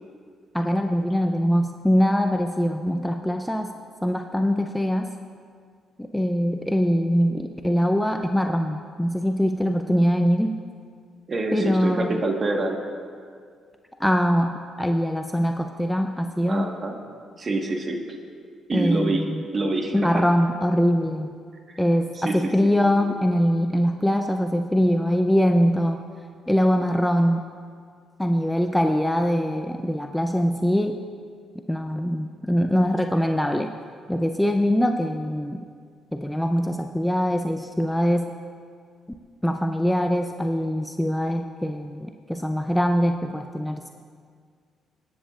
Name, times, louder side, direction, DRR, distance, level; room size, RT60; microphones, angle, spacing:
voice 1, 0.5-3.7 4.0-5.1 6.0-10.6 11.5-12.2 14.0-16.7 18.7-19.4 19.9-21.3 21.8-26.0 26.5-27.4 28.2-31.0 31.7-33.7 34.1-35.7 36.1-38.3 39.4-43.9, equal, 5° left, 4 dB, 0.4 m, -23 dB
voice 2, 11.3-12.8 16.5-17.0 17.4-18.0 18.7-19.3 19.5-20.2 21.7-21.8 22.1-22.7 23.0-23.1, right 2 dB, 35° right, 2 dB, 1.4 m, -26 dB
23.5 x 10.0 x 2.4 m, 2.1 s
cardioid pair, 115°, 0 cm